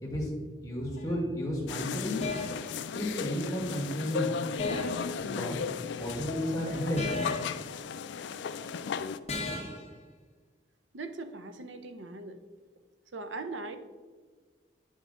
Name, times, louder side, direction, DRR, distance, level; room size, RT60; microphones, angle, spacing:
voice 1, 0.0-0.3 0.6-2.2 2.9-4.3 5.1-5.6 6.0-7.1, equal, 20° left, -4 dB, 1.8 m, -32 dB
sound 1, 1.0-1.2 2.2-2.7 4.6-5.1 7.0-7.6 9.3-9.9, left 2 dB, 35° left, 1.2 m, -35 dB
sound 2, 1.7-9.2, left 6 dB, 70° left, 0.3 m, -36 dB
voice 2, 10.9-12.4 13.1-13.8, right 3 dB, 85° right, 9 dB, 0.7 m, -40 dB
9.4 x 5.4 x 3.7 m, 1.5 s
head